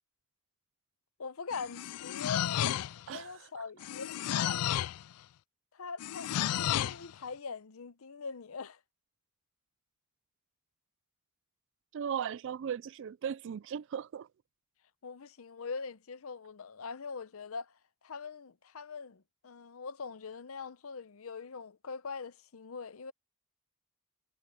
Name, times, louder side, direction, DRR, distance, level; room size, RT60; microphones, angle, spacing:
voice 1, 1.2-4.6 5.7-6.3 6.8-8.8 15.0-17.7 18.0-23.1, left 5 dB, 70° left, 0.7 m, -42 dB
sound 1, 1.5-3.1 3.8-5.0 6.0-7.0, left 11 dB, 90° left, 0.3 m, -32 dB
voice 2, 3.1-3.6 11.9-14.3, right 8 dB, 60° right, 0.3 m, -37 dB
head